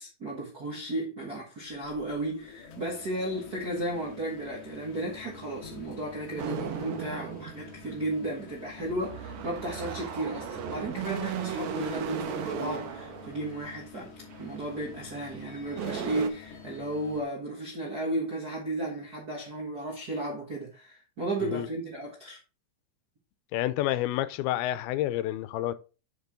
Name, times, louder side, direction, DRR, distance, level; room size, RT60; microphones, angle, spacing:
voice 1, 0.0-14.1 14.4-22.4, right 1 dB, 55° right, 1.0 m, -34 dB
sound 1, 1.6-17.2, left 5 dB, 65° left, 1.5 m, -48 dB
sound 2, 6.4-8.0 8.8-13.7 14.3-14.6 15.3-15.4 15.6-16.3, right 7 dB, 75° right, 1.8 m, -36 dB
voice 2, 23.5-25.7, left 14 dB, 85° left, 2.5 m, -29 dB
6.8 x 6.7 x 3.6 m
omnidirectional pair, 4.4 m